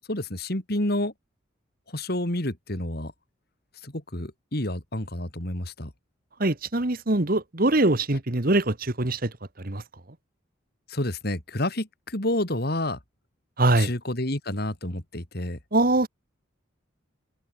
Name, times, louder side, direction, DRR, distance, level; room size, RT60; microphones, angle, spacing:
voice 1, 0.1-1.1 1.9-3.1 3.8-5.9 10.9-13.0 13.7-15.6, left 1 dB, 50° left, 3.3 m, -29 dB
voice 2, 6.4-9.3 9.6-9.8 13.6-13.9 15.7-16.1, right 2 dB, 45° right, 1.6 m, -23 dB
open air
head